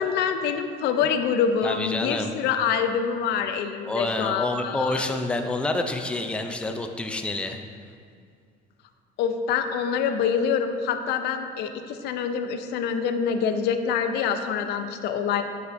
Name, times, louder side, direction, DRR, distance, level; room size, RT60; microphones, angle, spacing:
voice 1, 0.0-5.0 9.2-15.4, left 7 dB, 80° left, 8 dB, 0.4 m, -26 dB
voice 2, 1.6-2.3 3.9-7.6, left 2 dB, 5° left, 5 dB, 0.4 m, -28 dB
7.8 x 5.6 x 2.6 m, 2.3 s
cardioid pair, 110°, 17 cm